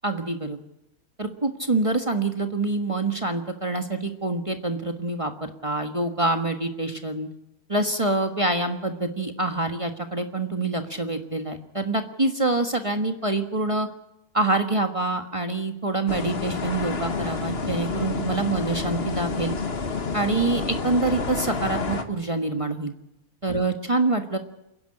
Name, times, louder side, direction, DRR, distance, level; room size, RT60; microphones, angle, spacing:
voice 1, 0.0-0.6 1.2-7.3 7.7-13.9 14.3-19.5 20.1-22.9 23.4-24.4, right 2 dB, 20° right, 6 dB, 1.4 m, -26 dB
sound 1, 16.1-22.0, left 4 dB, 40° left, 1.6 m, -29 dB
29.0 x 10.5 x 10.0 m, 0.90 s
omnidirectional pair, 1.7 m